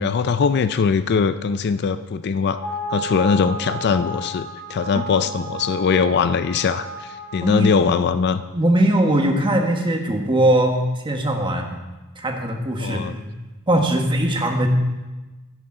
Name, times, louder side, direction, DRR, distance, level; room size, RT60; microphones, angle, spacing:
voice 1, 0.0-2.6 2.9-8.4 12.8-13.1, left 5 dB, 50° left, 12 dB, 0.4 m, -21 dB
sound 1, 2.6-7.8, equal, 80° left, 2.2 m, -32 dB
voice 2, 7.4-7.7 8.5-11.8 12.2-13.3 13.7-14.7, right 1 dB, 20° right, 2 dB, 1.3 m, -20 dB
13.0 x 10.0 x 3.8 m, 1.1 s
head